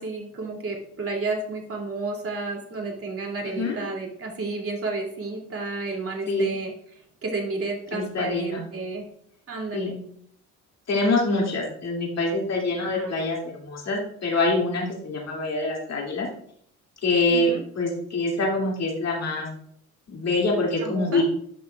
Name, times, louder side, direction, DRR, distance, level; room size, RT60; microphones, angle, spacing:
voice 1, 0.0-9.0 9.5-9.9 12.8-13.1 17.3-17.6 20.8-21.2, right 3 dB, 40° right, 1 dB, 2.8 m, -32 dB
voice 2, 7.9-8.6 9.7-10.0 10.9-16.3 17.0-19.5 20.1-21.2, left 2 dB, 45° left, -1 dB, 2.6 m, -25 dB
10.5 x 5.9 x 2.4 m, 0.65 s
supercardioid pair, 70°, 37 cm